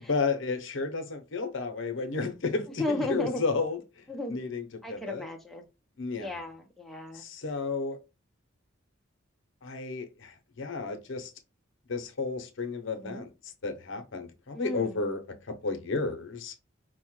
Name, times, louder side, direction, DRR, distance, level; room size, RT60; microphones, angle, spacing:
voice 1, 0.1-3.8 4.3-5.2 6.0-6.3 7.1-8.0 9.6-11.3 11.9-13.3 13.6-15.2 15.5-16.5, left 4 dB, 70° left, 0.7 m, -32 dB
voice 2, 2.8-3.5 4.1-4.4 4.8-5.6 6.2-7.2 12.9-13.2 14.5-15.0, left 1 dB, ahead, 0.6 m, -34 dB
4.5 x 2.1 x 3.0 m
head